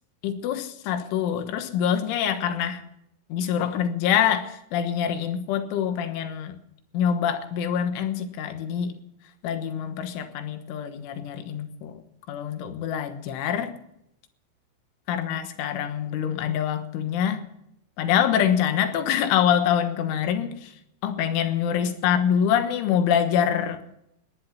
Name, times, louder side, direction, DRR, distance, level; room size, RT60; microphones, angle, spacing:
voice 1, 0.2-2.8 3.3-6.6 6.9-9.0 9.4-12.0 12.3-13.8 15.1-17.5 18.0-20.7 21.0-23.8, left 9 dB, 85° left, 8 dB, 3.8 m, -25 dB
19.0 x 10.5 x 5.6 m, 0.79 s
omnidirectional pair, 5.4 m